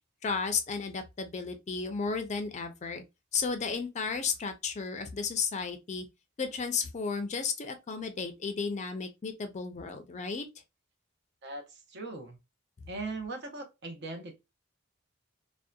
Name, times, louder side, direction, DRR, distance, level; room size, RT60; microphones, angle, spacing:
voice 1, 0.2-3.0 3.3-6.1 6.4-10.5, left 5 dB, 35° left, 0.4 m, -33 dB
voice 2, 11.4-12.4 12.9-14.4, right 3 dB, 55° right, 0.7 m, -39 dB
2.7 x 2.1 x 2.2 m
head